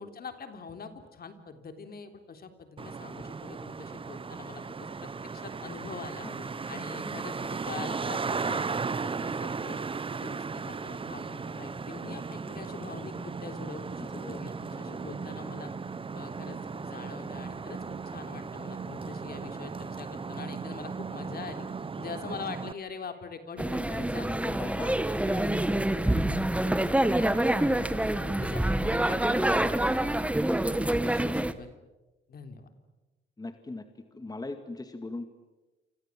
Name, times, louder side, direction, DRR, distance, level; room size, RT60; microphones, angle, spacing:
voice 1, 0.0-9.8 10.2-15.7 16.1-21.7 22.0-24.4 24.6-25.7 26.2-29.9 30.7-31.7 32.3-32.7, left 5 dB, 50° left, 7 dB, 3.6 m, -44 dB
Traffic noise roadway noise, 2.8-22.7, right 5 dB, 25° right, 0.9 m, -36 dB
voice 2, 14.7-15.0 22.3-22.4 24.4-24.9 25.2-25.4 26.0-26.4 33.4-33.9 34.1-35.3, left 2 dB, 20° left, 8 dB, 2.1 m, -40 dB
sound 1, 23.6-31.5, right 1 dB, 5° right, 1.6 m, -26 dB
28.5 x 26.5 x 7.6 m, 1.1 s
cardioid pair, 90°, 20 cm